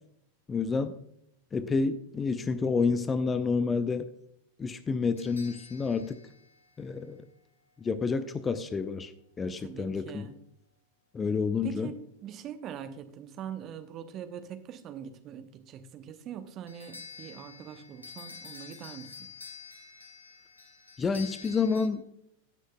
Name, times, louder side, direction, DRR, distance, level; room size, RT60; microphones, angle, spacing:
voice 1, 0.5-1.0 1.5-4.1 4.6-6.2 6.8-7.2 7.8-9.1 9.4-10.3 11.1-11.9 21.0-22.0, left 4 dB, 20° left, 13 dB, 0.5 m, -29 dB
sound 1, 5.2-7.4 16.7-21.9, left 5 dB, 80° left, 1.3 m, -48 dB
voice 2, 9.6-10.3 11.6-19.1, right 8 dB, 35° right, 9 dB, 0.9 m, -42 dB
16.5 x 6.4 x 2.2 m, 0.73 s
figure-of-eight pair, 90°, 0 cm